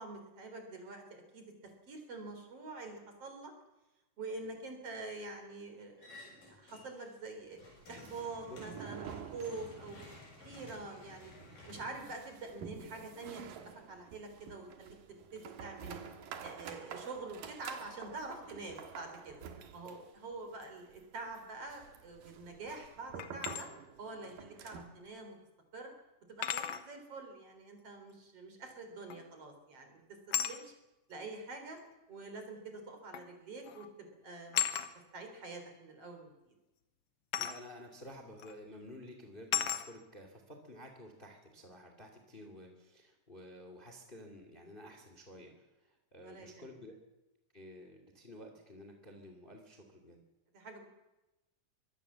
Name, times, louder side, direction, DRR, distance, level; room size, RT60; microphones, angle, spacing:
voice 1, 0.0-3.5 4.2-7.6 7.9-11.3 11.7-16.0 16.4-19.4 19.7-23.7 24.0-25.4 25.7-25.9 26.3-30.0 30.4-30.7 31.1-31.8 32.1-34.6 35.1-36.5 46.2-46.8 50.5-50.9, right 3 dB, 45° right, 5 dB, 4.7 m, -46 dB
sound 1, 6.0-7.1 7.4-12.8, left 1 dB, 90° left, 9.3 m, -54 dB
sound 2, 7.8-10.2 10.4-10.5 10.8-10.9 11.4-25.0, right 7 dB, 90° right, 3.3 m, -49 dB
sound 3, 23.2-23.6 25.2-25.3 26.4-26.9 29.1-29.4 30.3-30.6 31.8-31.9 33.1-33.3 33.6-33.9 34.5-34.9 37.3-37.6 38.4-38.5 39.5-39.9, left 9 dB, 60° left, 1.8 m, -34 dB
voice 2, 37.4-47.0 47.5-50.2, left 1 dB, 15° left, 4 dB, 2.3 m, -52 dB
24.0 x 17.0 x 7.5 m, 1.0 s
omnidirectional pair, 3.8 m